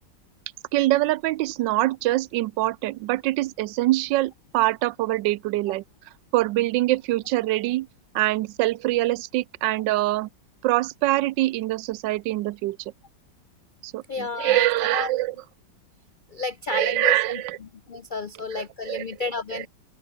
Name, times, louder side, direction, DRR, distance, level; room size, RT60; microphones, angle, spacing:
voice 1, 0.7-5.8 6.3-7.9 8.1-10.3 10.6-12.8 13.8-15.4 16.7-17.6 18.5-19.0 19.5-19.7, right 17 dB, 85° right, 1.2 m, -24 dB
voice 2, 14.1-14.7 14.9-15.1 16.3-17.1 17.9-19.7, left 4 dB, 80° left, 0.4 m, -31 dB
open air
omnidirectional pair, 1.9 m